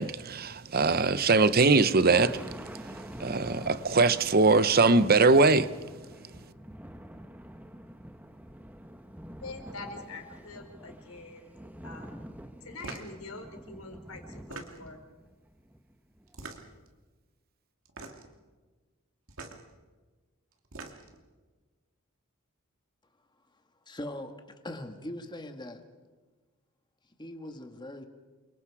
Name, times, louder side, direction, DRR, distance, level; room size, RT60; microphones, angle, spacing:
voice 1, 0.0-5.9, right 3 dB, 45° right, 0.9 m, -22 dB
Thunder, 2.1-16.4, equal, 5° right, 1.2 m, -47 dB
voice 2, 9.4-12.2 12.6-15.0, left 3 dB, 75° left, 4.7 m, -45 dB
sound 1, 12.8-13.1 14.3-15.0 16.3-16.9 17.9-18.3 19.3-19.6 20.5-21.2, right 3 dB, 65° right, 2.6 m, -43 dB
voice 3, 23.9-25.8 27.2-28.1, left 1 dB, 20° left, 1.8 m, -40 dB
29.0 x 24.5 x 4.9 m
head